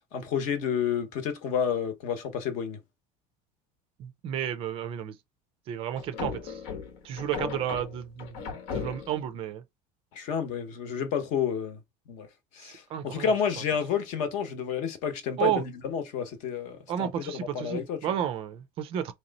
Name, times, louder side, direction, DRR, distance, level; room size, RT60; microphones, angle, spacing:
voice 1, 0.1-2.8 10.1-11.8 12.1-12.3 12.5-18.0, left 7 dB, 50° left, 0.9 m, -30 dB
voice 2, 4.0-5.2 5.7-6.6 7.0-8.4 8.7-9.6 12.6-13.3 15.4-15.6 16.9-19.1, right 10 dB, 35° right, 0.4 m, -32 dB
sound 1, 6.0-9.3, left 6 dB, 75° left, 1.1 m, -36 dB
3.2 x 3.0 x 3.9 m
cardioid pair, 180°, 16 cm